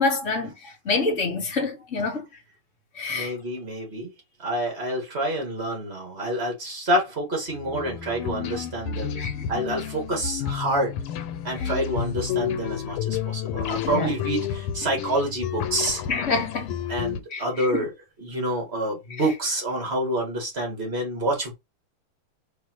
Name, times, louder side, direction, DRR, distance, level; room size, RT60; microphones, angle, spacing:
voice 1, 0.0-2.2 2.9-3.4 9.2-9.5 11.6-11.7 13.8-14.1 16.1-16.7 17.3-17.8, left 4 dB, 40° left, 1.5 m, -27 dB
voice 2, 3.1-4.1 4.4-9.2 9.5-11.0 11.4-16.0 16.9-17.9 18.2-21.5, right 1 dB, 30° right, 2.4 m, -27 dB
sound 1, 7.6-17.2, left 9 dB, 90° left, 1.6 m, -31 dB
4.8 x 3.4 x 3.1 m
omnidirectional pair, 2.4 m